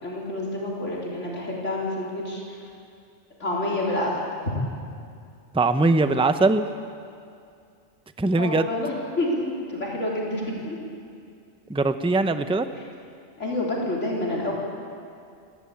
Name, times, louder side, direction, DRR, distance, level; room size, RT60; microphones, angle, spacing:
voice 1, 0.0-2.7 3.4-4.1 8.4-10.8 13.4-14.5, left 1 dB, 80° left, -4 dB, 4.1 m, -28 dB
voice 2, 5.5-6.7 8.2-8.7 11.7-12.7, right 3 dB, 5° right, 9 dB, 0.6 m, -21 dB
29.0 x 13.5 x 8.6 m, 2.4 s
omnidirectional pair, 1.2 m